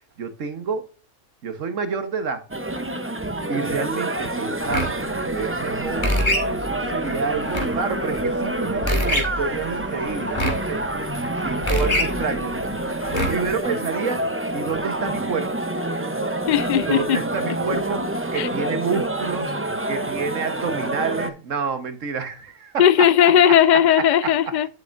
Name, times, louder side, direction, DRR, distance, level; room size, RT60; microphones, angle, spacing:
voice 1, 0.2-0.9 1.4-2.4 3.5-10.9 11.4-12.5 13.3-14.2 14.5-15.5 16.9-18.0 18.3-22.8 23.2-23.5 24.2-24.3, right 5 dB, 80° right, 1.6 m, -29 dB
sound 1, 2.5-21.3, right 1 dB, 15° right, 0.7 m, -27 dB
sound 2, 4.6-13.6, left 1 dB, 30° left, 2.3 m, -27 dB
voice 2, 16.5-17.2 18.3-18.5 22.8-24.7, left 9 dB, 70° left, 0.4 m, -17 dB
10.5 x 7.7 x 2.6 m
omnidirectional pair, 1.3 m